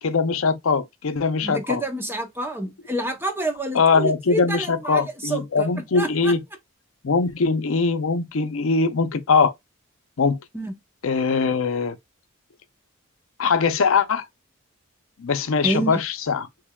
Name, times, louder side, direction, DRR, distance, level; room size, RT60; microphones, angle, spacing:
voice 1, 0.0-1.8 3.7-6.4 7.0-9.5 10.2-10.4 11.0-12.0 13.4-14.3 15.2-16.5, left 4 dB, 75° left, 0.6 m, -21 dB
voice 2, 1.4-5.7 5.9-6.3 10.5-10.7 15.6-16.0, right 1 dB, 10° right, 0.8 m, -28 dB
3.4 x 3.3 x 2.3 m
head